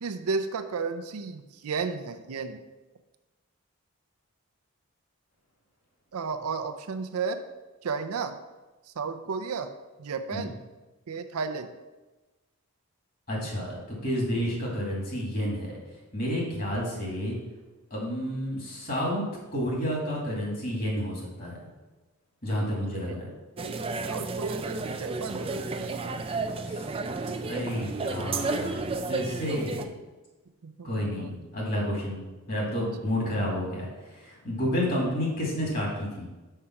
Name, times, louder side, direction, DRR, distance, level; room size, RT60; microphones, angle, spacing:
voice 1, 0.0-2.6 6.1-7.4 7.8-8.3 8.9-9.7 10.0-10.5 11.1-11.7 23.1-23.2 23.6-23.8 24.0-26.4 30.6-31.3, right 5 dB, 85° right, 8 dB, 0.5 m, -33 dB
voice 2, 13.3-15.7 16.1-17.4 17.9-19.2 19.5-21.5 22.4-23.3 26.7-26.9 27.5-29.9 30.8-36.3, equal, 40° left, -2 dB, 2.2 m, -30 dB
sound 1, 23.6-29.8, right 3 dB, 25° right, 0.3 m, -32 dB
5.6 x 4.9 x 5.7 m, 1.1 s
head